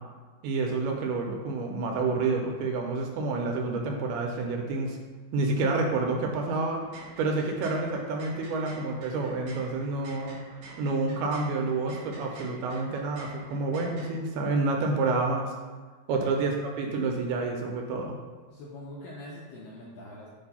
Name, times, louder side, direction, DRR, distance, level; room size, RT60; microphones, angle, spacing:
voice 1, 0.4-5.0 5.3-6.9 7.2-10.4 10.8-15.5 16.1-18.2, right 3 dB, 80° right, 1 dB, 2.3 m, -28 dB
sound 1, 6.8-14.1, right 2 dB, 60° right, 2.2 m, -48 dB
voice 2, 18.5-20.3, left 1 dB, 80° left, -4 dB, 2.0 m, -43 dB
7.2 x 2.7 x 5.3 m, 1.4 s
omnidirectional pair, 4.7 m